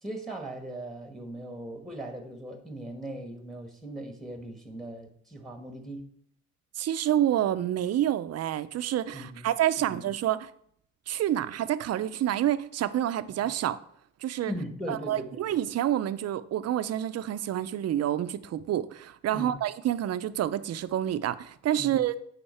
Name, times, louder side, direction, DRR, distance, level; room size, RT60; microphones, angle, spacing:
voice 1, 0.0-6.0 9.1-9.5 9.8-10.0 14.5-15.4 19.3-19.6 21.8-22.0, right 1 dB, ahead, 1.4 m, -39 dB
voice 2, 6.8-10.5 11.1-13.8 14.2-14.5 14.9-22.3, right 11 dB, 55° right, 0.5 m, -28 dB
8.8 x 4.2 x 4.3 m
cardioid pair, 90°, 30 cm